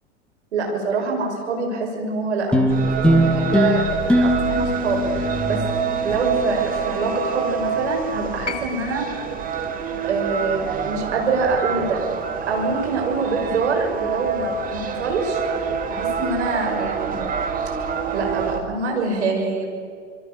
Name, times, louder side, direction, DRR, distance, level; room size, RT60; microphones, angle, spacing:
voice 1, 0.5-5.6 6.0-9.1 10.0-12.0 12.5-17.2 18.1-19.7, right 4 dB, 65° right, 2 dB, 6.4 m, -25 dB
sound 1, 2.5-7.2, equal, 5° left, 2.6 m, -22 dB
sound 2, 2.7-18.6, right 6 dB, 25° right, 2.3 m, -27 dB
sound 3, 8.5-12.6 13.8-13.9, left 5 dB, 70° left, 2.3 m, -39 dB
27.0 x 22.5 x 7.0 m, 2.2 s
figure-of-eight pair, 95°, 37 cm